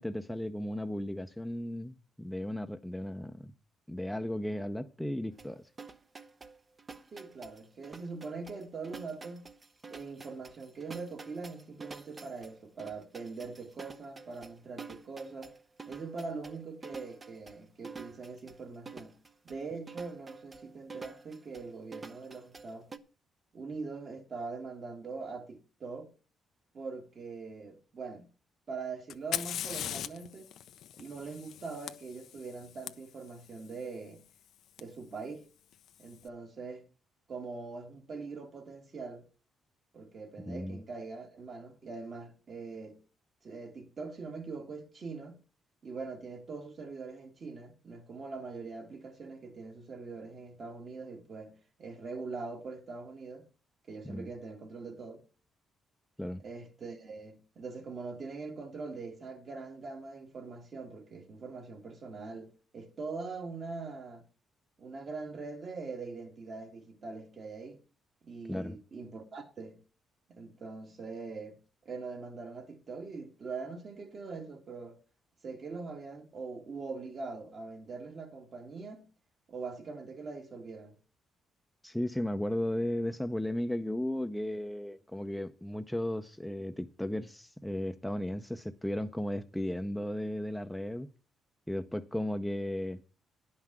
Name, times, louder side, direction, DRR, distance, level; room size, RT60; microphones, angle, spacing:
voice 1, 0.0-3.5 3.9-5.6 40.5-40.8 54.0-54.3 56.2-56.4 68.5-68.8 81.8-91.1 91.7-93.0, left 1 dB, 5° left, 0.7 m, -35 dB
sound 1, 5.4-23.0, right 4 dB, 30° right, 0.8 m, -49 dB
voice 2, 7.1-9.4 9.9-15.5 15.8-19.2 19.4-22.9 23.5-26.1 26.7-28.3 28.7-30.5 31.0-34.2 34.8-35.4 36.0-36.8 37.3-39.2 39.9-43.0 43.4-45.4 45.8-53.5 53.9-55.2 56.4-64.2 64.8-67.8 68.2-69.8 70.3-75.0 75.4-79.1 79.5-81.0, right 4 dB, 45° right, 2.2 m, -42 dB
Fire, 29.1-32.9 34.8-34.9 35.7-36.1, left 10 dB, 75° left, 0.6 m, -39 dB
10.5 x 5.8 x 7.4 m
cardioid pair, 90°, 0 cm